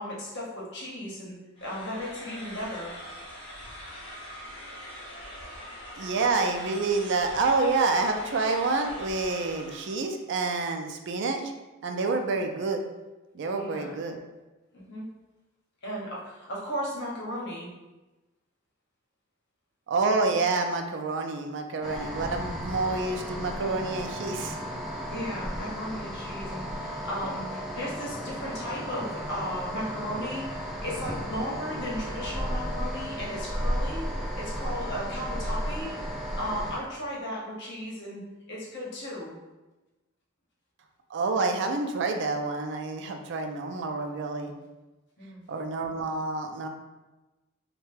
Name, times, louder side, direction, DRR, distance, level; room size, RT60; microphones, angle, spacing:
voice 1, 0.0-1.4 1.6-2.9 12.3-12.4 13.5-14.0 14.7-15.1 15.8-17.7 25.1-34.1 34.4-35.9 36.3-38.2 38.5-39.4 45.2-45.4, equal, 55° left, -5 dB, 0.9 m, -35 dB
sound 1, 1.6-10.0, equal, 30° left, 1.0 m, -43 dB
voice 2, 6.0-11.5 11.8-12.8 13.3-14.2 19.9-24.6 41.1-44.5 45.5-46.7, right 3 dB, 60° right, 5 dB, 0.4 m, -28 dB
sound 2, 21.8-36.8, equal, 5° right, 0.5 m, -34 dB
3.3 x 2.2 x 3.2 m, 1.1 s
head